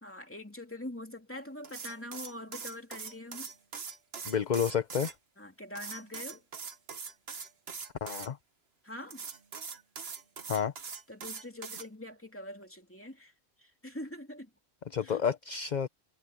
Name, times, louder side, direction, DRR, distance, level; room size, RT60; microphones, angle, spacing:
voice 1, 0.0-3.5 5.4-6.4 8.8-9.2 11.1-13.3 13.6-14.5 15.0-15.2, left 1 dB, 10° left, 2.7 m, -44 dB
sound 1, 1.6-5.1 5.7-8.3 9.1-11.9, right 5 dB, 65° right, 1.5 m, -42 dB
voice 2, 4.2-5.1 8.0-8.4 10.5-10.7 14.9-15.9, left 7 dB, 45° left, 0.9 m, -30 dB
omnidirectional pair, 1.1 m